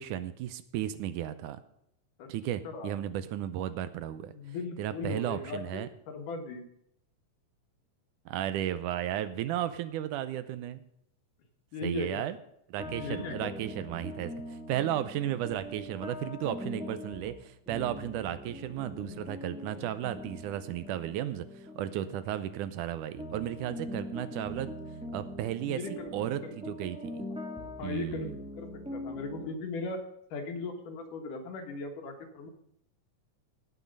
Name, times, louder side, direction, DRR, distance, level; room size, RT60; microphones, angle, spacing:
voice 1, 0.0-1.6 2.3-4.3 4.8-5.9 8.3-10.8 11.8-12.4 12.7-24.7 25.1-27.2 27.8-28.4, right 12 dB, 80° right, 13 dB, 2.1 m, -34 dB
voice 2, 2.6-2.9 4.2-6.6 11.7-12.3 13.0-13.5 22.0-22.2 25.6-26.5 27.8-32.5, left 3 dB, 75° left, 5 dB, 3.1 m, -38 dB
sound 1, 12.8-22.9 23.2-29.5, left 1 dB, 5° right, 0.6 m, -42 dB
17.5 x 6.3 x 5.3 m, 0.75 s
omnidirectional pair, 3.8 m